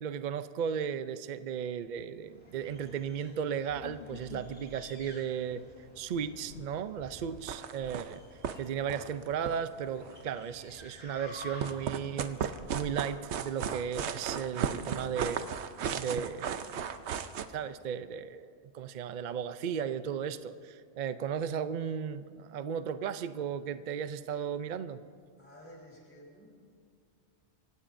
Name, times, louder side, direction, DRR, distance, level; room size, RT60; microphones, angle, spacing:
voice 1, 0.0-5.6 6.0-8.2 8.6-15.5 16.0-16.9 17.5-25.0, right 7 dB, 55° right, 12 dB, 0.5 m, -35 dB
sound 1, 2.2-12.0, left 1 dB, 35° left, 3.3 m, -52 dB
sound 2, 3.7-5.2 5.9-6.9 7.3-7.4 7.9-8.7, left 7 dB, 75° left, 1.0 m, -51 dB
sound 3, 7.4-8.1 8.4-8.6 8.8-10.2 11.4-17.5, right 7 dB, 75° right, 1.0 m, -35 dB
voice 2, 25.4-26.5, equal, 10° left, -3 dB, 3.4 m, -52 dB
25.5 x 16.0 x 2.6 m, 2.4 s
omnidirectional pair, 1.2 m